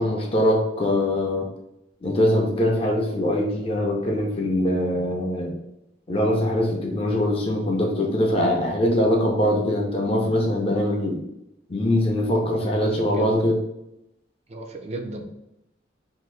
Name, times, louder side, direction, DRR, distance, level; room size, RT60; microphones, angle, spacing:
voice 1, 0.0-1.5 2.0-5.5 6.1-11.2 11.7-13.6, left 1 dB, 30° left, 0 dB, 0.5 m, -22 dB
voice 2, 12.6-13.3 14.5-15.3, right 2 dB, 35° right, 4 dB, 0.4 m, -35 dB
2.7 x 2.6 x 3.1 m, 0.84 s
head